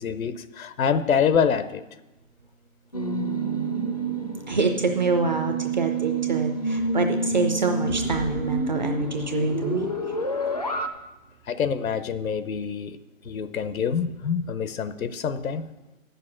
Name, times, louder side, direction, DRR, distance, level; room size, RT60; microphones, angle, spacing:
voice 1, 0.0-1.8 11.5-13.0 13.2-15.7, left 7 dB, 80° left, 13 dB, 0.7 m, -26 dB
sound 1, 2.9-10.9, right 3 dB, 30° left, 0.4 m, -28 dB
voice 2, 4.5-10.1, right 3 dB, 35° right, 4 dB, 0.5 m, -26 dB
sound 2, 7.9-11.8, right 7 dB, 70° right, 0.7 m, -41 dB
8.2 x 6.8 x 7.4 m, 1.1 s
hypercardioid pair, 160°, 41 cm